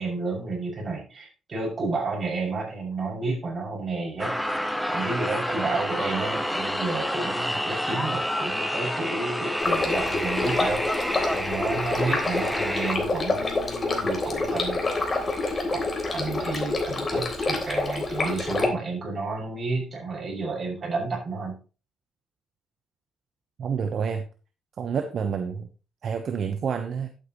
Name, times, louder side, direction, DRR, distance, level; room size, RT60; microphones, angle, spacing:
voice 1, 0.0-4.4 4.9-14.8 15.7-15.8 16.1-21.5, right 3 dB, 40° right, 6.5 m, -31 dB
sound 1, 4.2-13.0, equal, ahead, 1.2 m, -29 dB
Stream, 9.6-18.7, left 2 dB, 30° left, 3.4 m, -27 dB
voice 2, 23.6-24.3 24.8-25.7 26.0-27.1, right 6 dB, 60° right, 1.0 m, -28 dB
12.0 x 8.6 x 3.1 m
cardioid pair, 90°, 0 cm